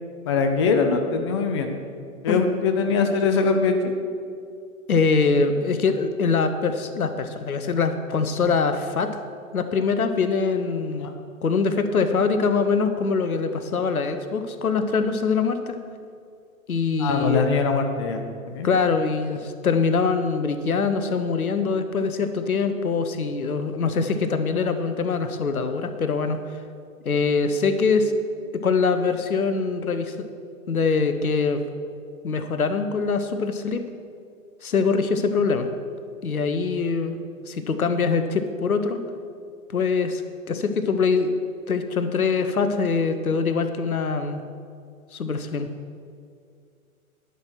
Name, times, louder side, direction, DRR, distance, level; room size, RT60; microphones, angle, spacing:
voice 1, 0.3-1.7 2.2-3.7 11.0-11.1 17.0-18.7, left 5 dB, 20° left, 5 dB, 0.4 m, -22 dB
voice 2, 4.9-9.1 9.5-11.1 11.4-15.8 16.7-17.4 18.6-26.4 27.0-28.1 28.6-30.3 30.7-31.6 32.2-33.8 34.6-35.7 36.2-37.2 37.5-39.0 39.7-40.2 40.5-41.3 41.7-44.4 45.1-45.7, left 4 dB, 80° left, 9 dB, 0.9 m, -23 dB
11.0 x 6.1 x 4.5 m, 2.3 s
figure-of-eight pair, 115°, 43 cm